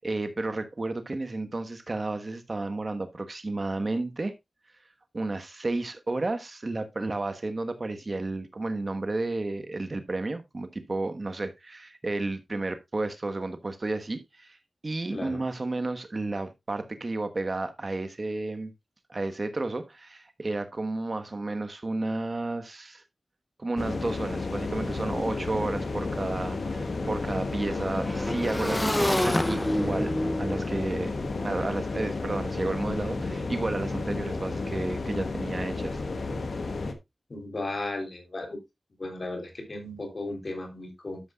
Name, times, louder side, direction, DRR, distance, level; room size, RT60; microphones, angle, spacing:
voice 1, 0.0-4.3 5.1-14.6 14.8-18.7 19.1-23.0 23.6-31.2 31.4-36.0, right 2 dB, 50° right, 1.3 m, -32 dB
voice 2, 15.1-15.4 37.3-38.6 39.0-41.3, left 2 dB, 55° left, 3.4 m, -35 dB
sound 1, 23.8-36.9, left 3 dB, 80° left, 1.3 m, -32 dB
Motorcycle / Engine, 24.9-25.0 25.2-32.4, left 1 dB, 15° left, 0.6 m, -31 dB
12.0 x 7.3 x 2.3 m
cardioid pair, 45°, 0 cm